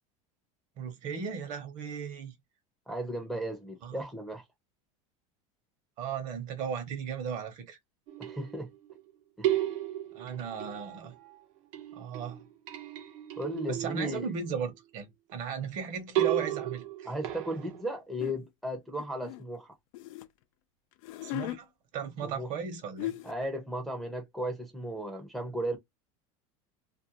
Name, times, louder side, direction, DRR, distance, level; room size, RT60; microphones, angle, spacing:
voice 1, 0.8-2.3 3.8-4.0 6.0-7.8 10.1-11.1 11.9-12.4 13.7-17.1 21.2-21.7 21.9-23.1, right 6 dB, 45° right, 0.9 m, -36 dB
voice 2, 2.9-4.4 8.2-8.7 9.4-9.6 13.4-14.3 17.1-19.7 22.2-22.5 23.2-25.8, equal, ahead, 0.6 m, -35 dB
sound 1, 8.1-9.0 9.4-11.4 11.7-14.7 16.2-17.8, right 14 dB, 75° right, 0.8 m, -34 dB
sound 2, 18.2-18.4 19.0-20.3 20.9-21.6 22.6-22.7 23.0-23.5, left 16 dB, 75° left, 0.4 m, -37 dB
2.5 x 2.1 x 2.7 m
supercardioid pair, 150°, 17 cm